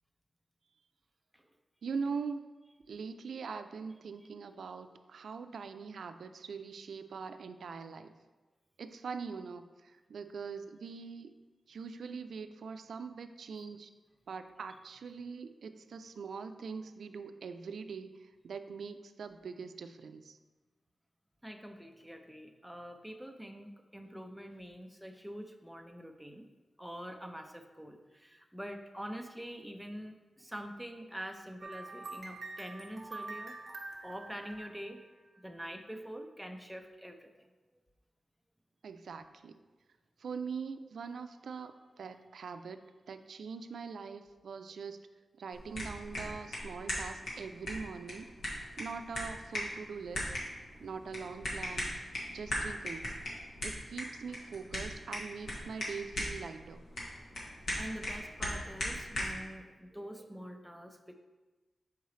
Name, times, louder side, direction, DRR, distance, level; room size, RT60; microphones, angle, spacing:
voice 1, 1.8-2.5 2.9-8.1 8.8-11.3 11.7-13.9 14.3-20.4 38.8-39.6 40.2-42.8 43.1-45.0 45.4-48.3 48.8-50.3 50.8-51.9 52.3-53.1 53.6-56.8, right 5 dB, 85° right, 9 dB, 0.3 m, -42 dB
voice 2, 21.4-26.5 26.8-33.6 34.0-35.0 35.4-37.3 57.8-61.1, equal, ahead, 4 dB, 0.4 m, -45 dB
sound 1, 31.6-35.4, right 3 dB, 40° right, 0.7 m, -46 dB
sound 2, 45.5-59.4, equal, 75° left, 1.6 m, -39 dB
6.7 x 4.7 x 3.1 m, 1.2 s
wide cardioid pair, 155°, 0 cm